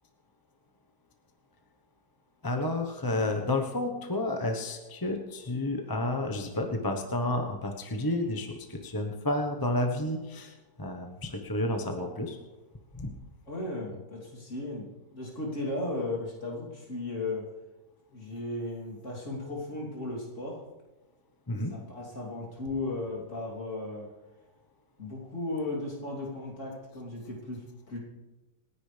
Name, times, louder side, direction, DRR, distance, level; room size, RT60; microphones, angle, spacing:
voice 1, 2.4-12.4 13.0-13.1 21.5-21.7, left 1 dB, 15° left, 3 dB, 0.9 m, -31 dB
voice 2, 13.5-17.5 18.1-20.6 21.7-24.1 25.0-28.0, left 2 dB, 40° left, -4 dB, 3.5 m, -36 dB
27.0 x 10.0 x 3.4 m, 1.2 s
omnidirectional pair, 1.9 m